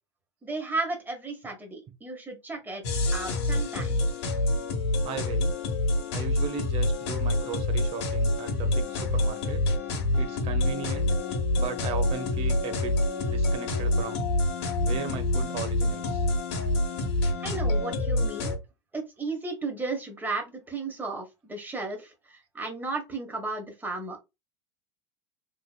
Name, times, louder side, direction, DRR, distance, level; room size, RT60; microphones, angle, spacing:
voice 1, 0.4-2.8 3.1-4.0 17.4-18.5 18.9-24.2, right 3 dB, 10° right, 1.7 m, -34 dB
sound 1, 2.8-18.6, left 1 dB, 70° left, 1.2 m, -27 dB
voice 2, 5.0-5.5 6.1-9.6 10.2-11.1 11.6-13.0 13.3-14.3 14.8-16.3, right 5 dB, 40° right, 1.1 m, -37 dB
3.6 x 3.3 x 2.3 m
hypercardioid pair, 90°, 15 cm